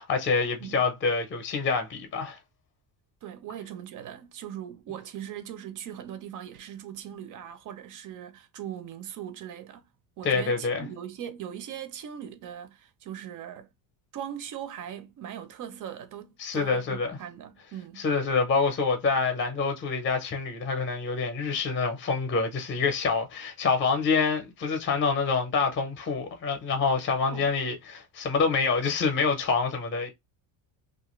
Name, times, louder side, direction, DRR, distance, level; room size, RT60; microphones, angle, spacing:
voice 1, 0.0-2.4 10.2-10.9 16.4-17.2 18.0-30.1, left 4 dB, 25° left, 0.6 m, -26 dB
voice 2, 3.2-9.8 10.2-13.7 14.1-18.1 27.2-27.5, right 10 dB, 45° right, 0.5 m, -40 dB
2.7 x 2.5 x 2.9 m
cardioid pair, 160°, 47 cm